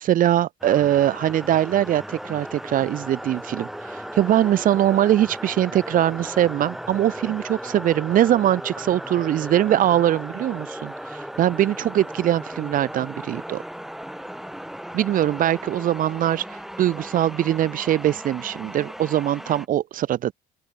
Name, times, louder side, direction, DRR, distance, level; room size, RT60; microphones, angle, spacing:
voice 1, 0.0-13.6 14.9-20.3, right 12 dB, 55° right, 0.6 m, -22 dB
sound 1, 0.6-19.7, equal, ahead, 0.7 m, -36 dB
open air
cardioid pair, 110°, 17 cm